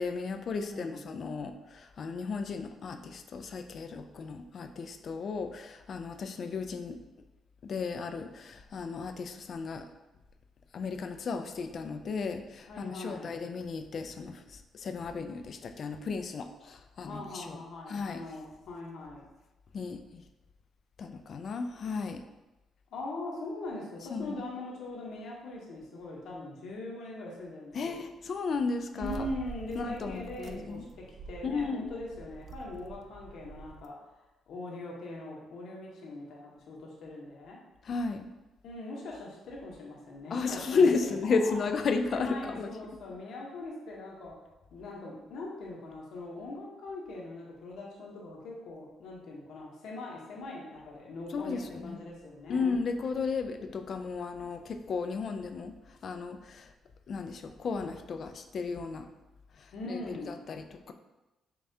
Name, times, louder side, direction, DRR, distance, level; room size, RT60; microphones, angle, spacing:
voice 1, 0.0-7.0 7.6-9.9 10.7-17.6 17.9-18.2 19.7-20.2 21.0-22.2 24.1-24.4 27.7-29.3 29.7-30.9 31.4-31.9 37.8-38.3 40.3-42.7 51.3-52.0 52.5-56.7 57.1-59.1 59.6-60.9, left 4 dB, 55° left, 7 dB, 0.3 m, -34 dB
voice 2, 0.6-1.0 12.7-13.4 17.0-19.3 22.9-28.0 28.9-34.0 34.5-37.6 38.6-40.9 41.4-41.6 42.1-44.4 44.7-52.7 59.7-60.5, left 2 dB, 75° left, -3 dB, 0.9 m, -41 dB
sound 1, 29.0-33.9, right 4 dB, 50° right, 0.3 m, -46 dB
5.3 x 2.3 x 2.7 m, 1.1 s
cardioid pair, 90°, 0 cm